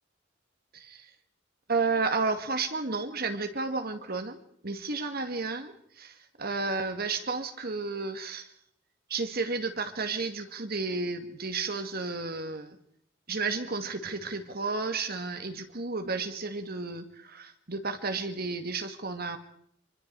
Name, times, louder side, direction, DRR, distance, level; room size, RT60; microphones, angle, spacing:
voice 1, 0.7-1.1 1.7-8.5 9.1-12.8 13.3-19.4, right 4 dB, 55° right, 7 dB, 2.3 m, -32 dB
26.5 x 24.5 x 4.8 m, 0.70 s
head